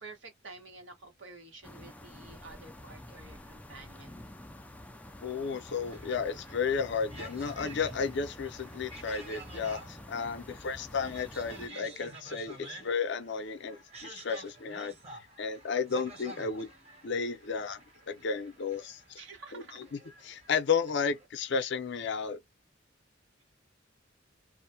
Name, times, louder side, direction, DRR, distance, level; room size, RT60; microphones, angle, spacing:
voice 1, 0.0-4.2 19.2-19.8, right 3 dB, 75° right, 1.2 m, -50 dB
sound 1, 1.6-11.7, left 1 dB, 10° left, 0.3 m, -48 dB
voice 2, 5.2-14.9 15.4-16.7 17.0-17.8 18.1-19.2 19.5-22.4, left 5 dB, 65° left, 0.5 m, -33 dB
sound 2, 5.7-21.3, right 2 dB, 35° right, 1.0 m, -50 dB
2.4 x 2.1 x 2.7 m
head